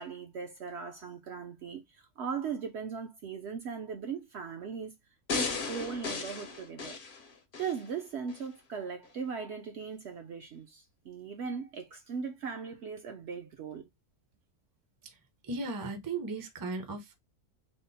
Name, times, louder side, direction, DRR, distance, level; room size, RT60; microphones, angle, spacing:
voice 1, 0.0-4.9 5.3-7.0 7.6-13.9, right 6 dB, 60° right, 0.7 m, -39 dB
sound 1, 5.3-7.8 8.3-8.4, left 4 dB, 50° left, 0.7 m, -35 dB
voice 2, 15.5-17.2, right 3 dB, 25° right, 0.4 m, -36 dB
3.6 x 2.0 x 3.9 m
omnidirectional pair, 1.5 m